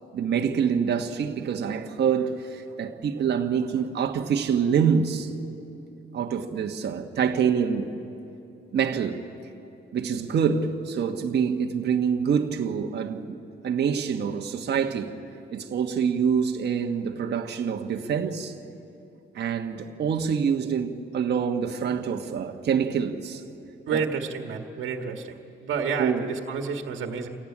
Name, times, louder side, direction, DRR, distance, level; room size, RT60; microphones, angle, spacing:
voice 1, 0.1-5.3 6.1-7.9 8.7-9.2 9.9-13.4 13.6-15.2 15.5-18.6 19.3-23.4 26.0-26.2, right 7 dB, 55° right, 1.3 m, -26 dB
voice 2, 23.9-27.3, right 5 dB, 75° right, 1.7 m, -30 dB
27.0 x 15.0 x 9.8 m
cardioid pair, 90°, 20 cm